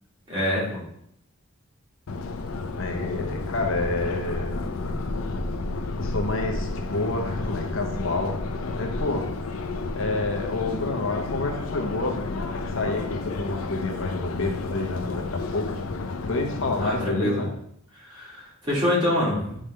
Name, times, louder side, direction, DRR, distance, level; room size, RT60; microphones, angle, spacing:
voice 1, 0.3-0.8 16.8-17.4 18.0-19.6, left 1 dB, 25° right, -6 dB, 2.3 m, -25 dB
Subway metro underground, 2.1-17.1, left 3 dB, 85° left, 0.6 m, -31 dB
voice 2, 2.7-4.6 6.0-8.4 8.8-9.3 9.9-17.5, left 2 dB, 65° left, 2 dB, 0.9 m, -29 dB
8.6 x 3.6 x 3.3 m, 0.71 s
head